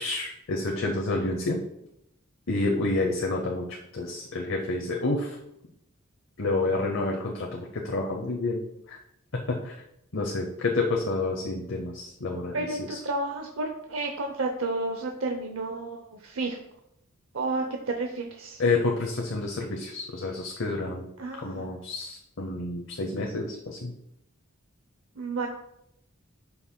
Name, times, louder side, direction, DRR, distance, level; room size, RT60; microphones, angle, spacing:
voice 1, 0.0-1.6 2.5-5.4 6.4-8.6 8.9-9.0 9.3-9.8 10.1-13.0 18.6-21.1 21.4-23.9, left 2 dB, 65° left, 1 dB, 0.8 m, -29 dB
voice 2, 12.5-16.6 17.3-18.6 21.2-21.7 25.2-25.5, right 2 dB, 80° right, 3 dB, 0.7 m, -31 dB
11.5 x 5.5 x 2.2 m, 0.79 s
head